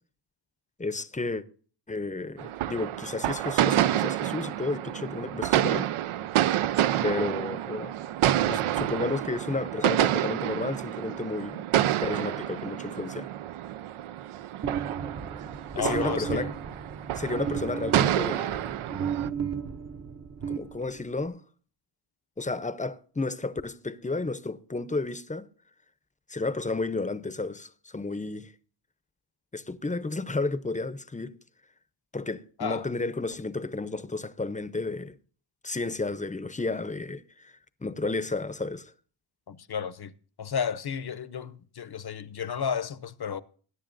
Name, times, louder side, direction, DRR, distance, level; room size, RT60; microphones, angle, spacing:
voice 1, 0.8-1.4 1.9-5.9 7.0-7.9 8.5-11.6 11.9-13.3 15.8-16.5 17.1-18.8 20.5-21.4 22.4-25.5 26.3-28.5 29.5-31.3 32.1-35.1 35.6-38.9, left 3 dB, 15° left, 0.6 m, -32 dB
sound 1, 2.4-19.3, right 12 dB, 85° right, 0.5 m, -28 dB
sound 2, 14.6-21.2, right 7 dB, 35° right, 0.7 m, -34 dB
voice 2, 15.7-16.5 32.6-32.9 39.5-40.1 40.4-43.4, left 7 dB, 50° left, 0.8 m, -32 dB
21.0 x 9.9 x 2.6 m
wide cardioid pair, 80°, 49 cm